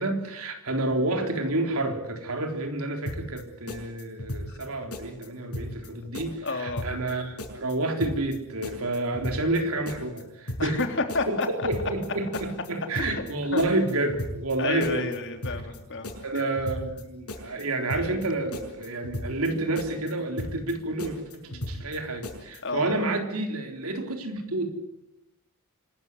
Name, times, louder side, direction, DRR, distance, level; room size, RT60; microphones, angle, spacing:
voice 1, 0.0-10.8 11.3-11.4 11.7-15.0 16.2-21.2 21.7-24.7, right 2 dB, 70° right, 5 dB, 3.9 m, -29 dB
sound 1, 3.1-3.4 3.7-4.6 4.9-5.3 5.5-5.9 6.1-7.1 7.4-7.7 8.0-8.4 8.6-9.6 9.9-10.2 10.5-10.8 11.1-12.1 12.3-12.7 12.9-13.3 13.6-14.5 14.8-15.2 15.4-15.8 16.0-17.0 17.3-17.6 17.9-18.3 18.5-19.5 19.8-20.1 20.4-20.7 21.0-22.0 22.2-22.6, left 1 dB, 90° left, 6.8 m, -35 dB
voice 2, 6.4-6.9 10.6-11.7 13.0-13.2 13.5-13.6 14.6-16.5 17.9-18.3 21.5-21.7 22.6-23.0, left 3 dB, 55° left, 6 dB, 3.3 m, -31 dB
26.0 x 13.5 x 9.6 m, 0.85 s
head